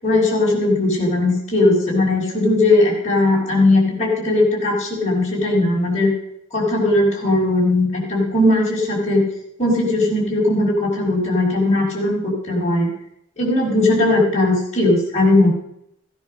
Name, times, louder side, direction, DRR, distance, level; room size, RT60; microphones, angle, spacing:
voice 1, 0.0-6.1 6.5-9.3 9.6-12.9 13.4-15.5, left 2 dB, 35° left, -3 dB, 5.9 m, -18 dB
16.5 x 10.0 x 6.7 m, 0.76 s
head